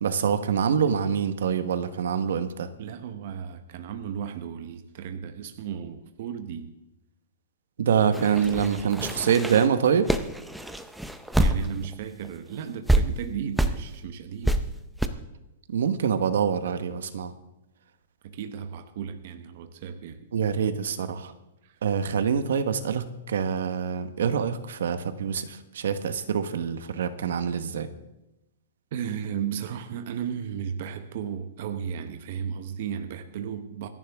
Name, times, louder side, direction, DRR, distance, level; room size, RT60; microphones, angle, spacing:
voice 1, 0.0-2.7 7.8-10.1 15.7-17.3 20.3-21.3 21.8-27.9, right 7 dB, 75° right, 10 dB, 1.2 m, -25 dB
voice 2, 2.8-6.7 11.4-14.6 18.2-20.3 21.6-21.8 28.9-33.9, right 8 dB, 40° right, 8 dB, 0.9 m, -34 dB
sound 1, 8.1-11.9 12.2-12.3 12.9-13.0 13.6-13.8 14.4-14.6 15.0-15.1, right 1 dB, ahead, 0.5 m, -25 dB
26.0 x 11.0 x 3.5 m, 0.94 s
hypercardioid pair, 180°, 0 cm